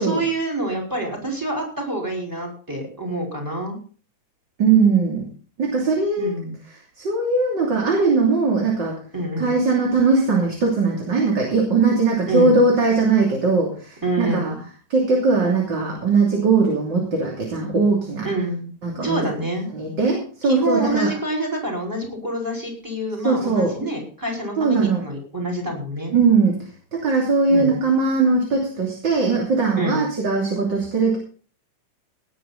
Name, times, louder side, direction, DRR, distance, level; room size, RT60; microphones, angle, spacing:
voice 1, 0.0-3.7 6.2-6.6 9.1-9.5 12.3-12.6 14.0-14.6 18.2-18.7 19.0-19.7 20.4-26.1 27.5-27.7 29.8-30.0, right 1 dB, 5° right, 0 dB, 4.5 m, -26 dB
voice 2, 4.6-5.3 5.6-6.4 6.7-9.0 9.4-14.6 14.9-18.3 18.8-19.2 19.7-21.1 23.2-23.7 24.6-25.0 26.1-26.6 26.9-31.2, right 4 dB, 35° right, -1 dB, 3.3 m, -20 dB
18.5 x 9.8 x 4.1 m, 0.40 s
omnidirectional pair, 3.8 m